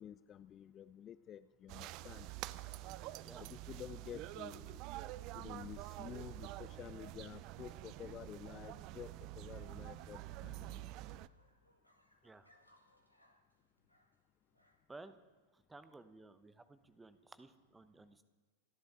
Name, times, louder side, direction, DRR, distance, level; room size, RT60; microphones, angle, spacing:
voice 1, 0.0-2.3 3.4-4.8 5.3-11.2, left 10 dB, 30° left, 15 dB, 0.4 m, -51 dB
sound 1, 1.7-11.3, right 16 dB, 40° right, 0.5 m, -47 dB
sound 2, 7.3-15.1, equal, 90° left, 1.9 m, -74 dB
voice 2, 15.5-18.2, right 3 dB, 10° right, 11 dB, 1.0 m, -56 dB
28.5 x 10.5 x 4.0 m, 1.4 s
figure-of-eight pair, 90°, 0 cm